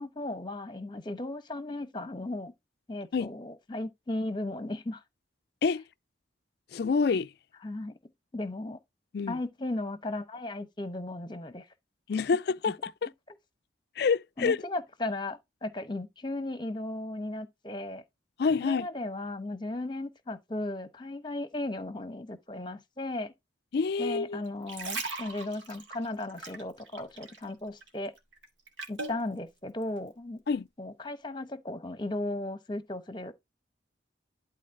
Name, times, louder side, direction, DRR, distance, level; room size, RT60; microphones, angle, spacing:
voice 1, 0.0-2.5 2.9-5.0 7.6-7.9 8.3-8.8 9.3-11.7 12.7-12.8 14.4-18.0 18.6-23.3 24.0-28.1 28.9-30.4 30.8-33.3, left 2 dB, 25° left, 0.9 m, -36 dB
voice 2, 6.7-7.3 9.1-9.4 12.1-13.1 14.0-14.6 18.4-18.9 23.7-24.4 30.5-30.7, left 5 dB, 55° left, 0.4 m, -27 dB
sound 1, 24.5-27.5 27.8-29.2 29.8-30.0, right 3 dB, 75° right, 2.2 m, -39 dB
11.5 x 4.0 x 3.7 m
head